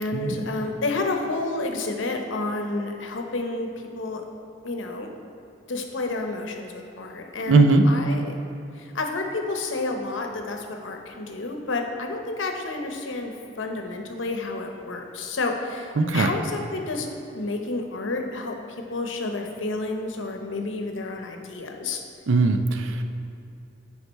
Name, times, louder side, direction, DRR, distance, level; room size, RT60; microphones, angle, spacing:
voice 1, 0.0-3.7 3.9-4.2 4.6-5.1 5.7-8.3 8.8-17.1 17.3-18.6 18.9-22.0, left 2 dB, 90° left, 4 dB, 0.8 m, -30 dB
voice 2, 7.5-7.8 16.0-16.3 22.3-22.6, right 3 dB, 90° right, 7 dB, 0.5 m, -18 dB
8.2 x 4.8 x 4.6 m, 3.0 s
head